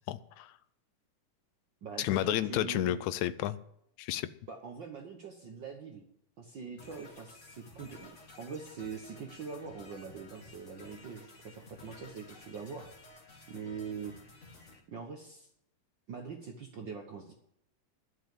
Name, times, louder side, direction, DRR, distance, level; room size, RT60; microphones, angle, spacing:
voice 1, 0.1-0.5 2.0-3.6 4.0-4.3, left 13 dB, 80° left, 15 dB, 1.9 m, -31 dB
voice 2, 1.8-3.0 4.5-6.0 6.4-8.1 8.4-12.9 13.5-14.1 14.9-15.5 16.1-17.3, right 5 dB, 60° right, 3 dB, 1.3 m, -43 dB
sound 1, 6.8-14.8, left 3 dB, 30° left, 1.5 m, -54 dB
11.5 x 7.1 x 8.2 m, 0.73 s
omnidirectional pair, 3.4 m